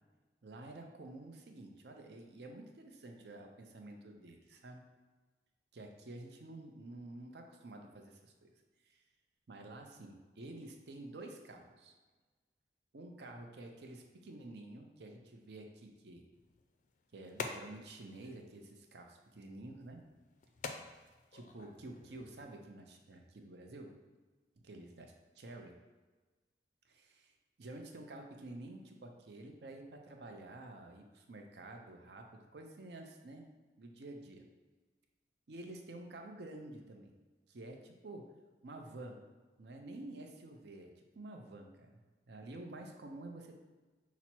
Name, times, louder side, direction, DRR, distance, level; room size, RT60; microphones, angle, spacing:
voice 1, 0.4-4.8 5.7-8.5 8.8-9.0 9.5-11.9 12.9-16.2 17.1-20.0 21.3-23.9 24.6-25.7 26.8-27.3 27.6-33.5 33.8-34.4 35.5-37.1 37.5-38.3 38.6-39.2 39.6-40.9 41.1-43.6, right 2 dB, 65° right, 3 dB, 0.6 m, -50 dB
sound 1, 16.3-22.4, left 4 dB, 45° left, 0.4 m, -49 dB
5.7 x 2.0 x 4.3 m, 1.3 s
head